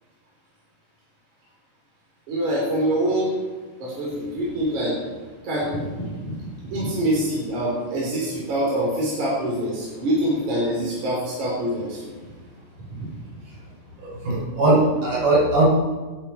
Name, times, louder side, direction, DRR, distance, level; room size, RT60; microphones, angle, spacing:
voice 1, 2.3-3.3 3.8-5.0 5.4-6.3 6.7-12.0 12.9-13.1, right 1 dB, 65° right, -5 dB, 5.4 m, -25 dB
voice 2, 14.0-15.6, right 2 dB, 85° right, -6 dB, 7.8 m, -20 dB
25.5 x 9.8 x 4.5 m, 1.3 s
omnidirectional pair, 3.6 m